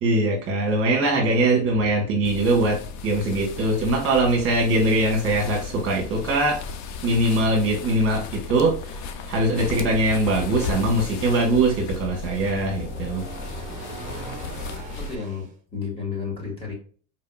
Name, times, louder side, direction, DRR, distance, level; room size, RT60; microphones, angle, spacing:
voice 1, 0.0-6.6 7.0-9.0 9.3-13.3, right 2 dB, 35° right, -1 dB, 1.4 m, -22 dB
sound 1, 2.2-15.2, left 5 dB, 50° left, 0.6 m, -35 dB
sound 2, 10.2-15.5, right 3 dB, 20° right, 0.9 m, -41 dB
voice 2, 14.9-15.4 15.7-16.7, left 5 dB, 15° left, -2 dB, 1.7 m, -31 dB
4.3 x 2.8 x 2.3 m, 0.43 s
supercardioid pair, 120°, 37 cm